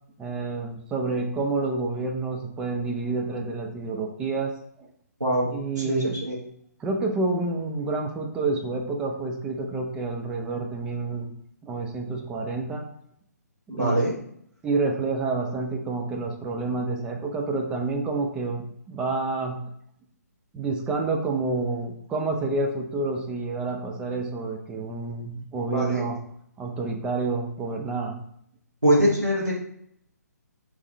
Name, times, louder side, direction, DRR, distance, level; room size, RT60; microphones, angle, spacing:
voice 1, 0.2-4.5 4.8-4.9 5.5-6.1 6.8-11.3 11.6-12.8 13.7-13.9 14.6-19.6 20.5-26.2 26.6-28.2, right 3 dB, 10° right, 1 dB, 0.4 m, -28 dB
voice 2, 5.2-6.4 13.7-14.1 25.6-26.0 28.8-29.5, equal, 90° right, -6 dB, 1.2 m, -23 dB
3.5 x 3.2 x 4.1 m, 0.68 s
figure-of-eight pair, 135°, 9 cm